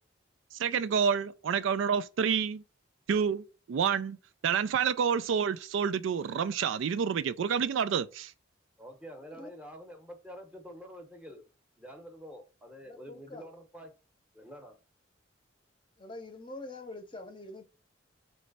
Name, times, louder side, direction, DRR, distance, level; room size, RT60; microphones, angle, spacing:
voice 1, 0.6-2.6 3.1-4.2 4.4-8.3, right 7 dB, 80° right, 0.3 m, -28 dB
voice 2, 8.8-11.5 11.8-13.9 14.3-14.8, equal, 5° right, 0.8 m, -47 dB
voice 3, 12.9-13.4 16.0-17.6, left 2 dB, 25° left, 0.7 m, -44 dB
3.3 x 3.1 x 3.9 m
head